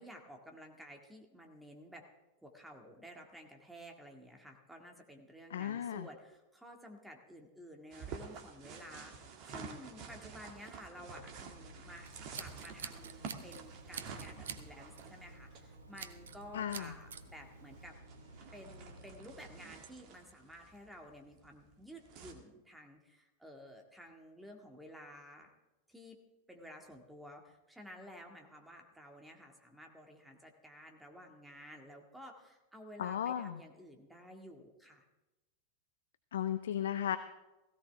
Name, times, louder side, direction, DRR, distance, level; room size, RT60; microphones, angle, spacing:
voice 1, 0.0-2.0 2.4-12.1 12.4-18.0 18.5-25.5 25.9-26.2 26.5-35.0, equal, 5° right, 2 dB, 2.0 m, -53 dB
voice 2, 5.5-6.1 16.5-16.9 33.0-33.6 36.3-37.2, left 10 dB, 60° left, 12 dB, 0.6 m, -35 dB
sound 1, 7.9-22.3, right 5 dB, 40° right, 1.8 m, -50 dB
sound 2, 11.0-19.6, right 1 dB, 85° right, 3.9 m, -55 dB
Scissors, 12.1-13.6 13.9-14.6 15.0-15.2 16.0-16.4 16.7-17.2, right 7 dB, 65° right, 0.8 m, -45 dB
17.0 x 16.5 x 3.5 m, 1.0 s
figure-of-eight pair, 90°, 0 cm